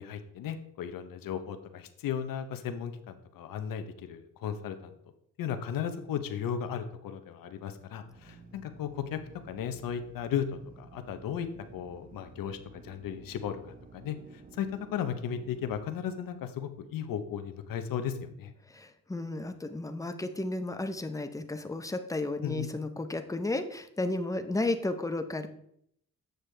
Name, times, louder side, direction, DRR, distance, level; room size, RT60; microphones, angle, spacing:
voice 1, 0.0-5.0 5.4-9.2 9.4-10.5 10.8-11.5 11.7-18.5 22.4-22.7, left 8 dB, 90° left, 8 dB, 0.8 m, -35 dB
Drill, 8.0-16.6, right 4 dB, 25° right, 0.8 m, -53 dB
voice 2, 18.7-25.5, left 2 dB, 10° left, 8 dB, 0.7 m, -33 dB
7.8 x 6.7 x 3.3 m, 0.70 s
cardioid pair, 105°, 33 cm